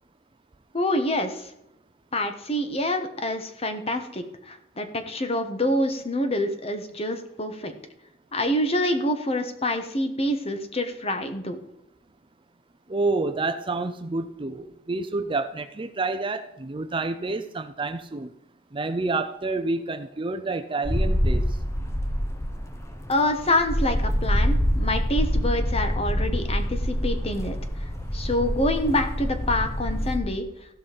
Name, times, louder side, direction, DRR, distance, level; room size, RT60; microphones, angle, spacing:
voice 1, 0.7-1.5 2.1-7.7 8.3-11.6 23.1-27.6 28.1-30.4, left 1 dB, 30° left, 7 dB, 1.3 m, -26 dB
voice 2, 12.9-18.3 18.7-21.5, right 3 dB, 25° right, 10 dB, 0.5 m, -28 dB
sound 1, 20.8-30.2, equal, 15° left, 1.0 m, -26 dB
16.0 x 5.5 x 5.2 m, 0.83 s
head